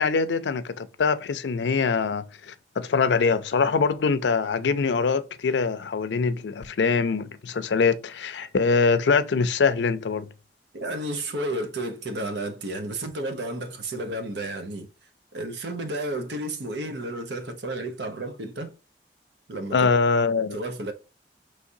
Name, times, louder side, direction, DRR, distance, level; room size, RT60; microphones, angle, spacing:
voice 1, 0.0-10.3 19.7-20.6, left 5 dB, 90° left, 0.5 m, -23 dB
voice 2, 10.7-14.9 15.3-18.7 19.5-19.9 20.5-20.9, right 1 dB, 80° right, 0.8 m, -32 dB
4.8 x 3.2 x 2.7 m
head